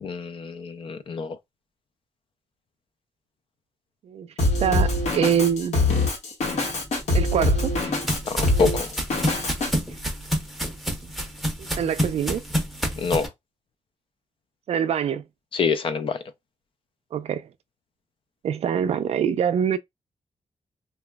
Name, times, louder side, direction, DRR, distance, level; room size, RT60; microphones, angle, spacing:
voice 1, 0.0-1.4 8.3-8.9 13.0-13.3 15.5-16.2, left 5 dB, 50° left, 0.4 m, -26 dB
Drum kit, 4.4-9.7, left 2 dB, 80° left, 1.0 m, -24 dB
voice 2, 4.6-5.8 7.1-7.7 11.6-12.4 14.7-15.2 17.1-17.5 18.4-19.8, right 8 dB, 65° right, 0.4 m, -24 dB
sound 1, 7.2-13.3, equal, ahead, 0.6 m, -29 dB
2.9 x 2.3 x 2.2 m
wide cardioid pair, 145°, 11 cm